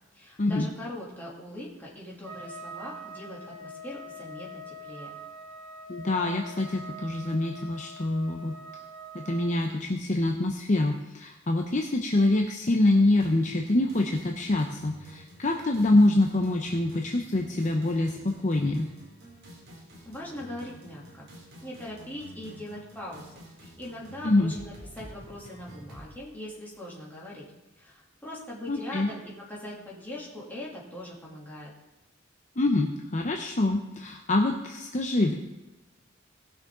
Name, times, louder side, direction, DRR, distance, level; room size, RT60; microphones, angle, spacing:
voice 1, 0.1-5.2 20.0-21.3 21.6-27.5 27.8-29.2 29.5-31.7, left 1 dB, 10° left, -6 dB, 3.0 m, -41 dB
Trumpet, 2.2-9.5, right 1 dB, 75° right, 3.8 m, -44 dB
voice 2, 5.9-8.5 9.1-18.9 24.2-24.5 28.7-29.1 32.6-35.3, left 2 dB, 35° left, 2 dB, 0.8 m, -25 dB
sound 1, 13.2-26.1, equal, 50° right, 3.0 m, -49 dB
18.0 x 6.4 x 3.9 m, 1.1 s
head